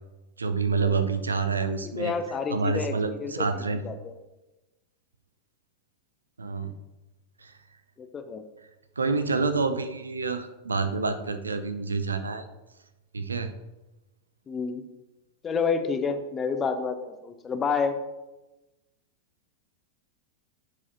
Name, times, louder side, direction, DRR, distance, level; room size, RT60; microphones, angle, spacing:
voice 1, 0.4-2.1 2.5-3.8 6.4-6.8 7.4-7.5 9.0-12.5 13.1-13.5, right 4 dB, 75° right, 10 dB, 0.5 m, -28 dB
voice 2, 2.0-4.2 8.0-8.4 14.5-14.8 15.4-17.0 17.2-18.0, left 5 dB, 20° left, 8 dB, 0.7 m, -29 dB
11.0 x 4.7 x 2.8 m, 1.0 s
figure-of-eight pair, 90°, 0 cm